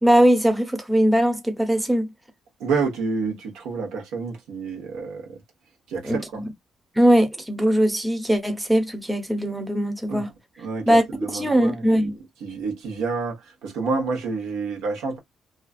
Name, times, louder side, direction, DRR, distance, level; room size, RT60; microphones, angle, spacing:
voice 1, 0.0-2.1 6.0-6.4 6.9-10.3 10.9-11.0 11.3-12.1, equal, 10° right, 0.7 m, -20 dB
voice 2, 2.6-5.4 5.9-6.4 10.1-15.2, right 4 dB, 90° right, 1.0 m, -29 dB
2.4 x 2.3 x 2.3 m
cardioid pair, 90°, 0 cm